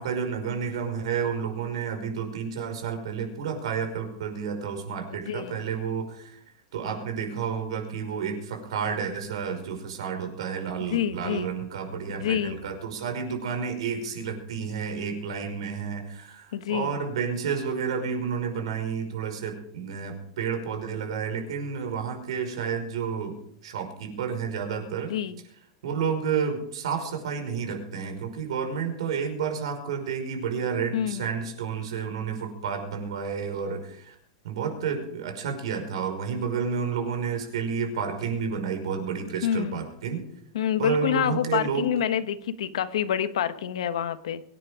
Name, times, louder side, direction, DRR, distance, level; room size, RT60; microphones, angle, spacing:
voice 1, 0.0-6.4 6.7-23.3 23.6-25.1 25.8-34.2 34.4-40.2 40.8-41.8, right 6 dB, 75° right, 5 dB, 5.4 m, -30 dB
voice 2, 5.1-5.6 10.9-11.5 12.1-12.6 16.5-16.9 25.1-25.4 30.9-31.3 39.4-39.8 40.5-44.4, left 10 dB, 90° left, 11 dB, 1.4 m, -27 dB
24.5 x 9.9 x 5.1 m, 0.68 s
supercardioid pair, 170°, 3 cm